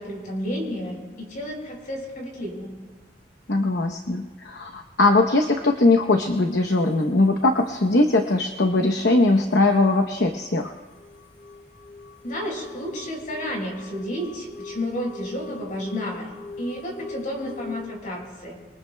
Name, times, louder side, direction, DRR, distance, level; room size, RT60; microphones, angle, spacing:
voice 1, 0.0-2.8 12.2-16.3 16.6-18.6, equal, 50° left, -1 dB, 5.6 m, -31 dB
voice 2, 3.5-10.7, left 2 dB, 65° left, 4 dB, 0.9 m, -20 dB
sound 1, 9.5-17.9, left 3 dB, 85° left, 1.1 m, -42 dB
27.5 x 23.0 x 2.3 m, 1.3 s
head